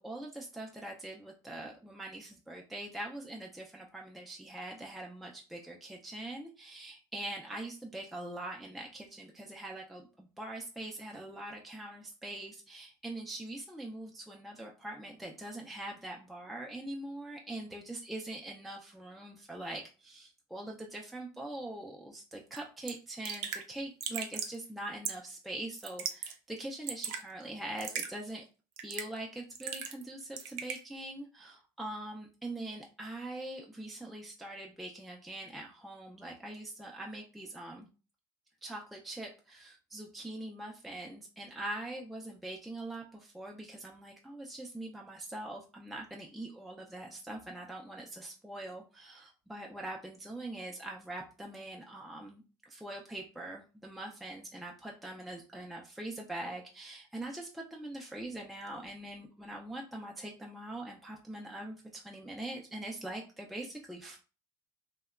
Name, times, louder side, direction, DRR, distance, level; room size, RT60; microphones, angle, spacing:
voice 1, 0.0-28.4 28.8-37.9 38.6-64.2, right 1 dB, ahead, -1 dB, 0.4 m, -43 dB
Raindrop / Drip, 22.5-22.6 22.9-23.0 23.2-23.6 24.0-24.6 25.0-25.3 25.8-26.3 26.6-27.2 27.8-28.1 28.8-29.2 29.6-30.1 30.4-30.8, right 8 dB, 80° right, 0.4 m, -37 dB
2.8 x 2.1 x 2.2 m, 0.34 s
supercardioid pair, 100°, 12 cm